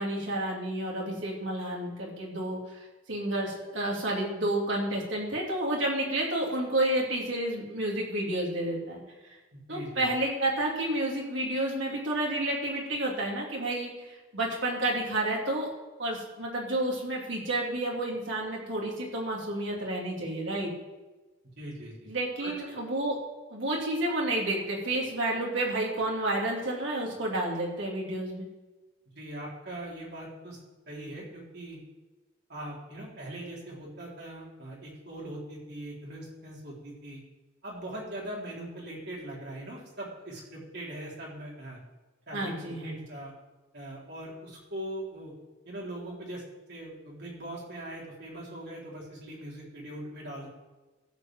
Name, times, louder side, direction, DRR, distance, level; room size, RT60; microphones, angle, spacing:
voice 1, 0.0-9.0 9.7-15.7 16.0-20.7 22.1-23.2 23.5-28.4 42.3-43.0, right 1 dB, 70° right, -3 dB, 3.3 m, -30 dB
voice 2, 9.5-10.1 21.6-21.9 22.4-22.5 29.2-30.6 30.9-31.8 32.5-37.2 37.6-41.8 42.3-43.3 43.7-45.3 45.6-46.4 46.7-50.5, right 1 dB, 55° right, -4 dB, 3.7 m, -41 dB
14.5 x 5.3 x 7.7 m, 1.2 s
head